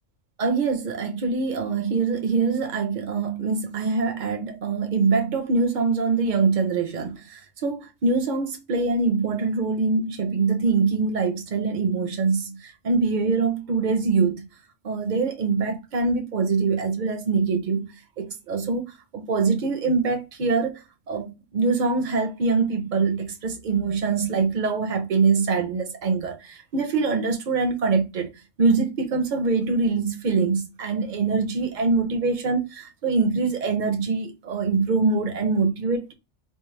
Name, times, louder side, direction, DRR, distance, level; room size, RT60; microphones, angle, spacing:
voice 1, 0.4-14.5 14.8-17.9 18.2-18.9 19.1-20.8 21.1-28.3 28.6-36.1, right 4 dB, 45° right, 0.7 m, -24 dB
4.4 x 2.0 x 3.1 m
omnidirectional pair, 1.2 m